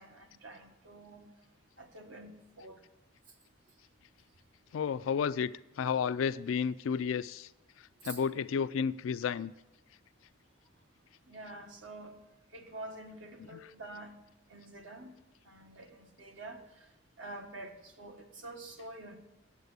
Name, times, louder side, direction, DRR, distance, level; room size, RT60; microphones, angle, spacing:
voice 1, 0.0-1.3 1.8-2.8 8.0-8.2 11.3-12.2 12.5-14.2 14.5-15.1 15.4-16.8 17.2-19.2, right 2 dB, 75° right, 4 dB, 1.5 m, -47 dB
voice 2, 4.7-5.5 5.8-7.5 8.0-9.5, left 6 dB, 80° left, 14 dB, 0.3 m, -31 dB
8.1 x 7.9 x 8.1 m, 0.92 s
head